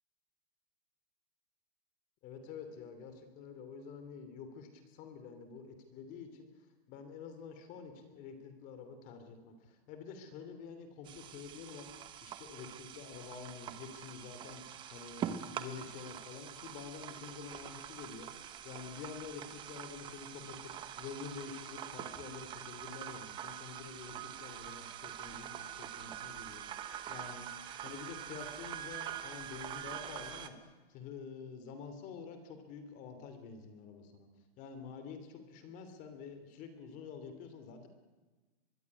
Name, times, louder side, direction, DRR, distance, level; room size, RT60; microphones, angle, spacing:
voice 1, 2.2-6.5 6.9-11.9 12.2-14.6 14.9-26.6 27.1-27.5 27.8-34.3 34.6-37.9, left 6 dB, 25° left, 8 dB, 3.0 m, -48 dB
sound 1, 11.1-30.5, right 10 dB, 15° right, 1.1 m, -45 dB
24.5 x 22.5 x 9.6 m, 1.3 s
hypercardioid pair, 170°, 32 cm